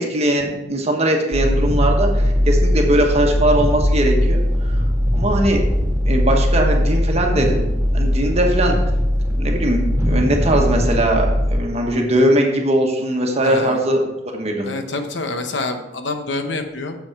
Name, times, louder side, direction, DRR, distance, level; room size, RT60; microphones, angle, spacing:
voice 1, 0.0-4.7 5.1-5.6 6.1-8.8 9.4-9.8 10.1-14.0 14.3-14.7, right 1 dB, 35° right, 1 dB, 1.3 m, -20 dB
sound 1, 1.3-11.6, equal, 15° right, 2.3 m, -19 dB
voice 2, 13.4-13.8 14.6-17.0, left 2 dB, 70° left, 7 dB, 0.9 m, -26 dB
7.4 x 7.0 x 4.6 m, 0.93 s
head